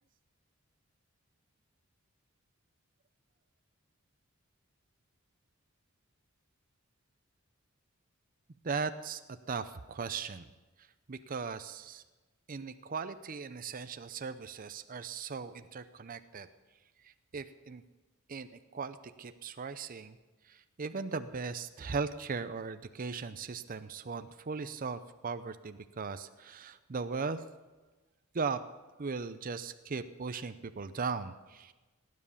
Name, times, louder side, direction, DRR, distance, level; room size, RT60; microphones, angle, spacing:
voice 1, 8.6-10.5 11.1-12.0 12.5-16.5 17.3-17.8 18.3-20.2 20.5-27.4 28.3-28.6 29.0-31.7, right 5 dB, 40° right, 11 dB, 0.6 m, -38 dB
17.5 x 9.7 x 7.0 m, 1.2 s
head